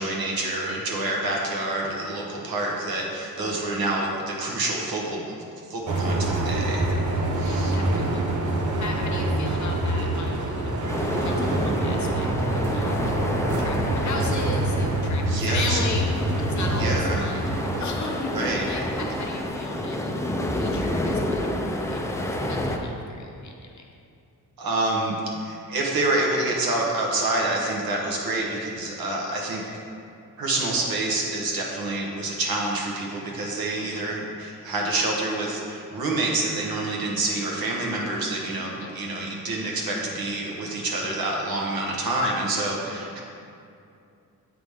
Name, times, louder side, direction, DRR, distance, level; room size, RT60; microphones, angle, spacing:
voice 1, 0.0-5.2 5.7-6.9 7.4-7.7 15.3-15.8 16.8-17.2 18.3-18.6 24.6-25.1 25.4-29.6 30.4-43.2, right 2 dB, 80° right, -1 dB, 1.3 m, -27 dB
voice 2, 3.3-3.7 7.4-8.3 8.8-23.9 33.8-34.1 38.7-39.0 42.9-43.2, left 3 dB, 50° left, 2 dB, 0.8 m, -37 dB
sound 1, 5.9-17.8, right 1 dB, 55° right, 1.0 m, -26 dB
sound 2, 10.9-22.8, left 1 dB, 10° left, 0.4 m, -29 dB
8.0 x 4.9 x 3.6 m, 2.5 s
wide cardioid pair, 145°, 36 cm